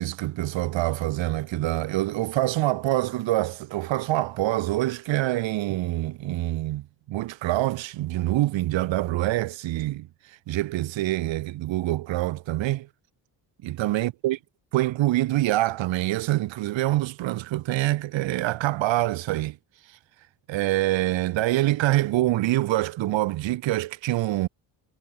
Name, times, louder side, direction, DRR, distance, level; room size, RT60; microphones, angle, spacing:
voice 1, 0.0-10.1 10.5-12.9 13.6-14.4 14.7-19.6 20.5-24.5, right 16 dB, 80° right, 2.6 m, -25 dB
cardioid pair, 125°, 45 cm